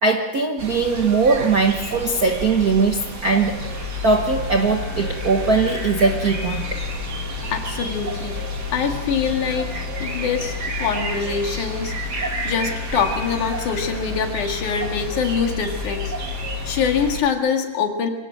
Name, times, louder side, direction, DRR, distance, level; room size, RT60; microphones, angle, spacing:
voice 1, 0.0-6.8, right 4 dB, 50° right, 3 dB, 1.0 m, -20 dB
sound 1, 0.6-17.2, right 3 dB, 35° right, 2.4 m, -31 dB
sound 2, 3.4-17.1, left 13 dB, 45° left, 4.7 m, -33 dB
voice 2, 7.5-8.4 8.7-9.7 10.0-18.1, left 6 dB, 75° left, 4 dB, 3.5 m, -24 dB
24.5 x 17.5 x 7.7 m, 1.2 s
omnidirectional pair, 3.6 m